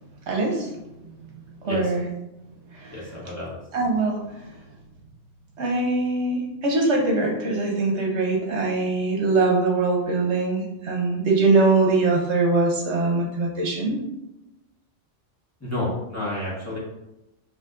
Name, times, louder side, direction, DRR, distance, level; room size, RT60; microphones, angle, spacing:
voice 1, 0.3-0.7 1.6-2.1 2.8-2.9 3.7-4.2 5.6-14.0, right 3 dB, 70° right, 0 dB, 1.1 m, -22 dB
voice 2, 2.9-3.6 15.6-16.8, left 1 dB, 15° left, -7 dB, 1.3 m, -30 dB
7.0 x 2.9 x 2.5 m, 0.93 s
omnidirectional pair, 1.2 m